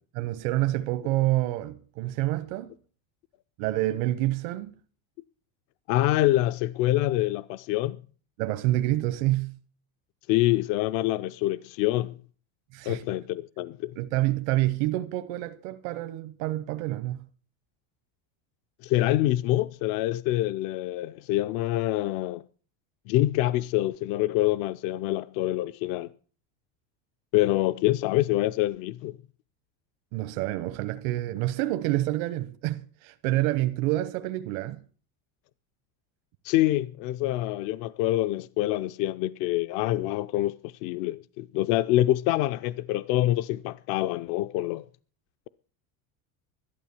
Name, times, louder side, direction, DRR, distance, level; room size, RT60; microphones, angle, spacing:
voice 1, 0.1-2.7 3.6-4.7 8.4-9.6 12.7-13.0 14.0-17.2 30.1-34.8, right 16 dB, 75° right, 1.0 m, -28 dB
voice 2, 5.9-8.0 10.3-12.1 12.9-13.9 18.8-22.4 23.1-26.1 27.3-29.2 36.4-44.9, left 15 dB, 60° left, 0.6 m, -26 dB
12.0 x 12.0 x 7.0 m
cardioid pair, 145°, 40 cm